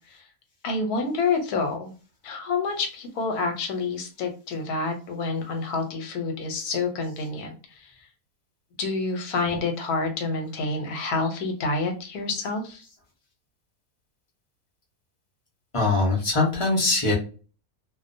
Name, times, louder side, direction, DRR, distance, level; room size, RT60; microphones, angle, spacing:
voice 1, 0.6-1.9 2.2-7.9 8.8-12.9, left 3 dB, 80° left, 5 dB, 1.1 m, -28 dB
voice 2, 15.7-17.1, left 3 dB, 35° left, -3 dB, 0.5 m, -22 dB
2.5 x 2.1 x 2.5 m, 0.35 s
omnidirectional pair, 1.6 m